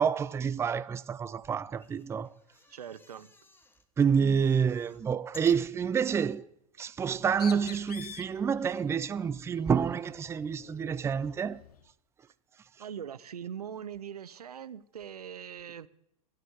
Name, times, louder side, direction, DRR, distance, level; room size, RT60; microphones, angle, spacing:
voice 1, 0.0-2.3 4.0-6.5 6.8-11.6, right 7 dB, 15° right, 0.4 m, -28 dB
sound 1, 1.6-3.9 4.2-6.2 6.8-6.9 7.0-7.1, left 3 dB, 10° left, 1.2 m, -56 dB
voice 2, 2.7-3.3 12.8-15.9, right 8 dB, 90° right, 0.7 m, -41 dB
Bird, 7.0-11.9, left 9 dB, 85° left, 0.7 m, -49 dB
14.5 x 6.8 x 9.4 m
hypercardioid pair, 105°, 19 cm